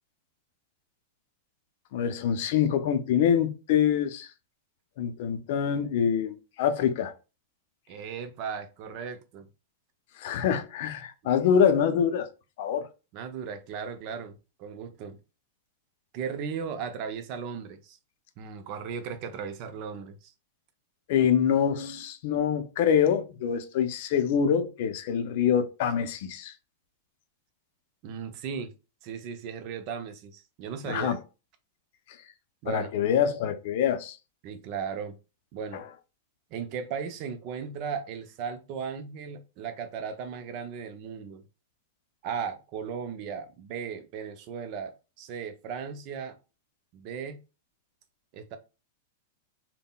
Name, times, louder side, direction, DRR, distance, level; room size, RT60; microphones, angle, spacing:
voice 1, 1.9-4.3 5.0-7.1 10.2-12.3 12.6-12.9 21.1-26.5 30.9-31.2 32.7-34.2 35.7-35.8, left 8 dB, 60° left, 0.4 m, -25 dB
voice 2, 7.9-9.5 13.1-15.2 16.1-18.0 18.4-20.3 28.0-28.7 29.0-31.2 32.6-32.9 34.4-35.2 35.5-35.8 36.5-41.4 42.2-46.4 46.9-47.4 48.3-48.6, right 6 dB, 45° right, 0.5 m, -36 dB
3.6 x 2.1 x 2.2 m
hypercardioid pair, 130°, 0 cm